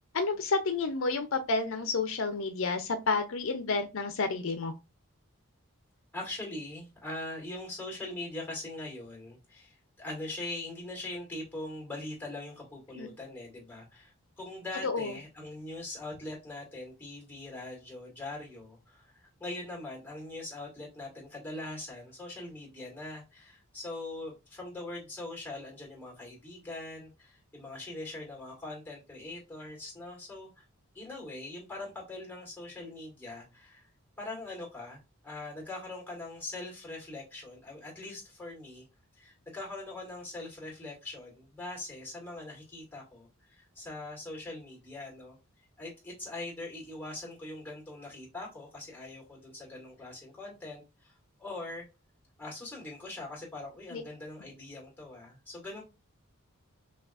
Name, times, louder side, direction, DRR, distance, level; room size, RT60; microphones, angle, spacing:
voice 1, 0.1-4.7 13.0-13.1 14.8-15.2 53.9-54.0, left 3 dB, 65° left, 7 dB, 0.5 m, -30 dB
voice 2, 6.1-30.6 30.9-33.9 34.2-38.8 39.1-45.4 45.8-51.1 51.4-51.9 52.4-55.8, left 2 dB, 10° left, -2 dB, 2.0 m, -42 dB
5.7 x 2.3 x 2.4 m, 0.26 s
head